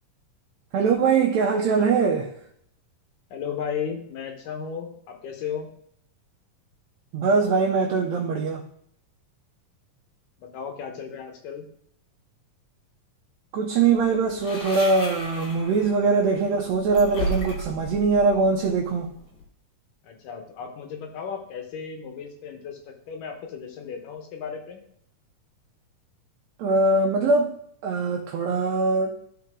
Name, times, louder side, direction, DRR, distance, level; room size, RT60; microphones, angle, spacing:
voice 1, 0.7-2.3 7.1-8.6 13.5-19.1 26.6-27.6 27.8-29.2, right 4 dB, 75° right, 0 dB, 1.7 m, -22 dB
voice 2, 3.3-5.7 10.4-11.7 20.0-24.8, left 7 dB, 80° left, 4 dB, 2.8 m, -35 dB
sound 1, 13.8-19.4, equal, 55° left, 1.2 m, -35 dB
12.5 x 4.5 x 3.7 m, 0.67 s
omnidirectional pair, 3.8 m